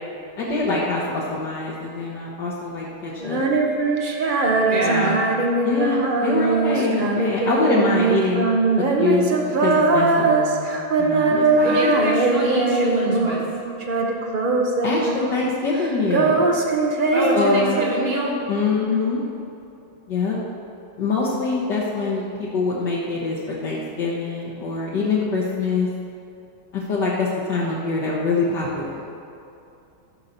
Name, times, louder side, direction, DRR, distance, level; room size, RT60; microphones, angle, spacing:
voice 1, 0.4-3.4 4.8-5.3 5.6-8.4 8.8-11.7 14.8-16.5 17.3-17.8 18.5-19.2 20.1-20.4 21.0-25.9 26.7-29.0, left 3 dB, 60° left, -5 dB, 1.7 m, -24 dB
Female singing, 3.2-13.5 13.8-15.5 15.7-18.4, right 3 dB, 55° right, 0.5 m, -21 dB
voice 2, 4.7-5.2 11.6-13.4 17.1-18.3, right 1 dB, 75° right, -5 dB, 3.6 m, -25 dB
13.5 x 5.6 x 6.6 m, 2.7 s
omnidirectional pair, 2.2 m